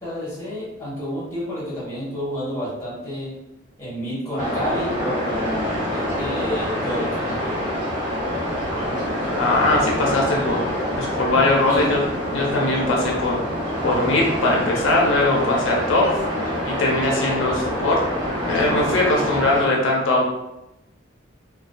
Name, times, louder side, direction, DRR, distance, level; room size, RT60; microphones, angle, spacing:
voice 1, 0.0-3.3 3.8-7.6 11.7-12.0, equal, 15° left, -8 dB, 0.9 m, -29 dB
sound 1, 4.4-19.7, equal, 20° right, 0.8 m, -26 dB
voice 2, 9.4-10.7 11.0-12.0 12.3-13.4 13.8-16.1 16.6-18.0 18.5-20.3, left 2 dB, 75° left, -2 dB, 0.5 m, -20 dB
2.4 x 2.2 x 2.2 m, 0.91 s
head